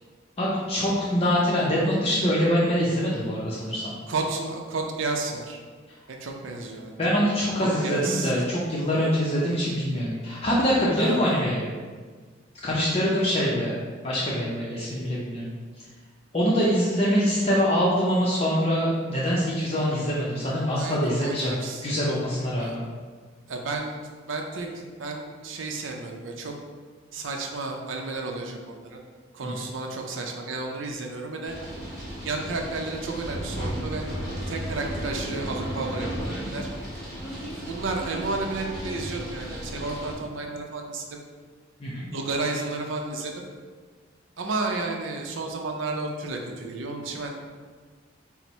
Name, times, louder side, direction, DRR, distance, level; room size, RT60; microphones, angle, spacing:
voice 1, 0.4-3.9 7.0-11.7 12.6-15.5 16.3-21.6 21.8-22.8 29.4-29.5 41.8-42.1, equal, 30° left, -6 dB, 0.5 m, -24 dB
voice 2, 4.1-5.6 6.1-7.1 7.6-8.3 11.0-11.4 20.7-21.8 22.5-22.8 23.5-24.0 24.3-26.5 27.1-29.0 29.3-31.6 32.2-34.1 34.5-36.7 37.6-41.2 42.1-43.4 44.4-47.4, right 3 dB, 85° right, 2 dB, 0.5 m, -32 dB
sound 1, 31.4-40.1, equal, ahead, 1.1 m, -34 dB
4.3 x 2.0 x 4.2 m, 1.5 s
head